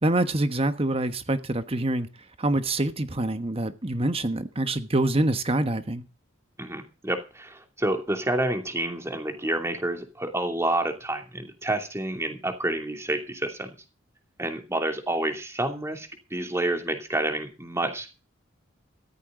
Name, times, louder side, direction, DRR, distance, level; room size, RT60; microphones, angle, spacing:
voice 1, 0.0-2.1 2.4-6.0, right 1 dB, 30° right, 1.3 m, -25 dB
voice 2, 6.6-13.7 14.4-18.1, right 1 dB, 15° right, 2.8 m, -29 dB
14.5 x 14.0 x 3.8 m
head